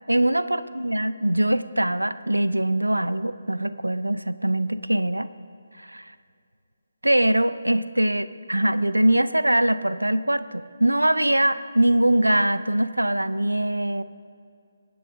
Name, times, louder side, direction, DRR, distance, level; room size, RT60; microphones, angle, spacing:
voice 1, 0.1-5.3 5.8-6.1 7.0-14.0, right 1 dB, 85° right, 14 dB, 0.5 m, -22 dB
23.0 x 10.0 x 2.6 m, 2.4 s
figure-of-eight pair, 145°, 0 cm